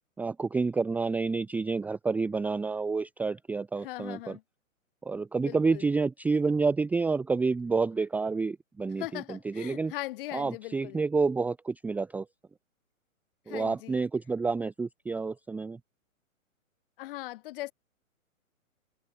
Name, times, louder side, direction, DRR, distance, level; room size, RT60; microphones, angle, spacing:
voice 1, 0.2-4.4 5.0-9.9 10.3-12.3 13.5-15.8, right 4 dB, 5° right, 0.8 m, -29 dB
voice 2, 3.8-4.4 5.4-5.8 9.0-11.0 13.5-14.0 17.0-17.7, left 18 dB, 40° left, 3.3 m, -39 dB
hypercardioid pair, 135°, 41 cm